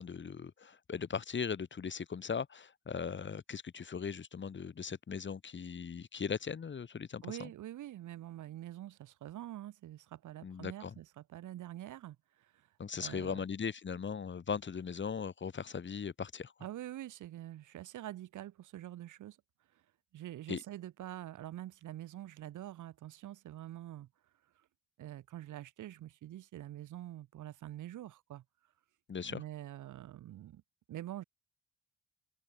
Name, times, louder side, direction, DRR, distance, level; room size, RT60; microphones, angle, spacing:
voice 1, 0.0-7.5 10.4-10.9 12.8-16.5 20.5-20.6 29.1-29.4, left 6 dB, 40° left, 2.1 m, -39 dB
voice 2, 7.2-12.7 13.0-13.4 16.6-19.4 20.1-24.1 25.0-28.4 29.2-30.6 30.9-31.2, right 13 dB, 80° right, 5.2 m, -46 dB
open air
cardioid pair, 90°, 30 cm